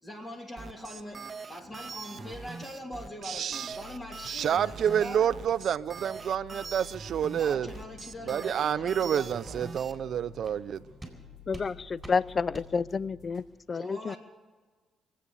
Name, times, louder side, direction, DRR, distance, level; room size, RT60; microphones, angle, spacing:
voice 1, 0.0-5.3 7.3-10.0 13.7-14.2, left 1 dB, 25° left, 2.6 m, -42 dB
sound 1, 0.6-9.9, right 4 dB, 35° right, 0.8 m, -43 dB
voice 2, 3.2-3.8 4.2-7.7 8.2-10.9, right 9 dB, 65° right, 0.4 m, -29 dB
sound 2, 3.7-13.5, left 8 dB, 70° left, 3.6 m, -52 dB
sound 3, 4.4-4.5 4.9-5.1 5.5-5.6 6.0-6.2 6.6-6.7 7.1-7.3 7.7-7.9 8.2-8.4 8.8-8.9 9.4-9.5 9.9-10.0 10.4-10.6 11.0-11.2 11.5-11.7 12.0-12.2 12.5-12.7, right 1 dB, 10° right, 3.9 m, -48 dB
voice 3, 11.5-14.2, left 5 dB, 40° left, 0.4 m, -30 dB
24.5 x 8.3 x 6.9 m
cardioid pair, 90°, 0 cm